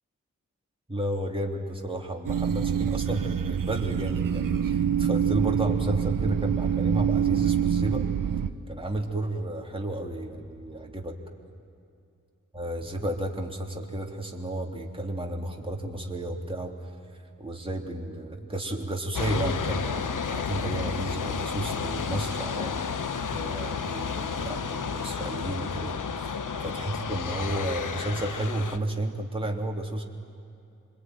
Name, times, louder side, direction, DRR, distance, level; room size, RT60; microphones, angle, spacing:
voice 1, 0.9-8.0 8.7-11.1 12.5-16.9 17.4-22.7 23.3-26.3 26.6-30.0, right 1 dB, 15° right, 0 dB, 3.4 m, -32 dB
sound 1, 2.3-8.5, right 8 dB, 80° right, 0.9 m, -26 dB
sound 2, 19.1-28.8, left 6 dB, 70° left, 1.2 m, -31 dB
27.5 x 21.0 x 9.6 m, 2.6 s
cardioid pair, 50°, 32 cm